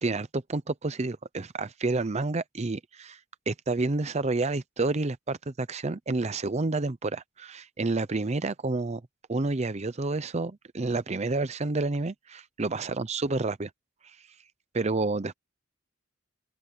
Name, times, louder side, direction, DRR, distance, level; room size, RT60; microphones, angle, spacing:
voice 1, 0.0-3.2 3.5-9.0 9.3-13.7 14.0-14.2 14.7-15.3, right 3 dB, 35° right, 0.6 m, -29 dB
open air
head